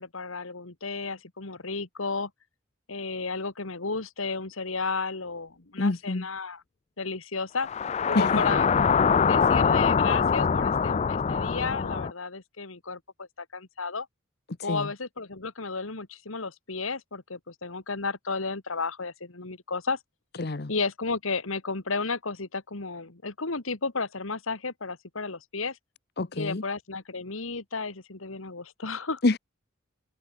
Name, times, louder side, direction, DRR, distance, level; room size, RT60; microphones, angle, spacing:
voice 1, 0.0-2.3 2.9-6.6 7.0-7.7 8.0-8.7 9.2-14.1 14.6-20.0 20.7-25.8 26.4-29.2, left 4 dB, 80° left, 2.0 m, -33 dB
voice 2, 5.8-6.3 8.1-8.4 14.7-14.9 20.4-20.7 26.2-26.6 29.2-29.4, left 2 dB, 50° left, 0.8 m, -26 dB
sound 1, 7.6-12.1, left 6 dB, 30° left, 0.3 m, -23 dB
open air
head